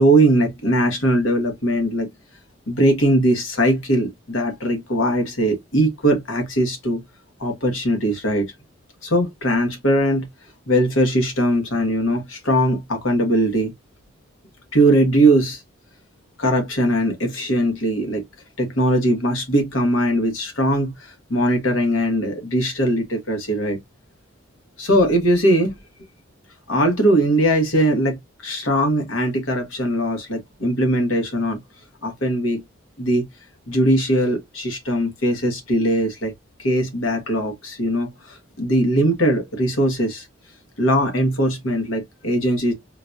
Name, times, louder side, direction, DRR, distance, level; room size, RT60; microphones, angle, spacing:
voice 1, 0.0-2.1 2.7-7.0 7.4-8.5 9.0-10.3 10.7-13.7 14.7-15.6 16.4-18.2 18.6-23.8 24.8-25.7 26.7-31.6 32.0-32.6 33.0-33.2 33.7-36.3 36.6-40.3 40.8-42.7, right 1 dB, 85° left, 1.3 m, -20 dB
3.9 x 2.3 x 2.6 m
head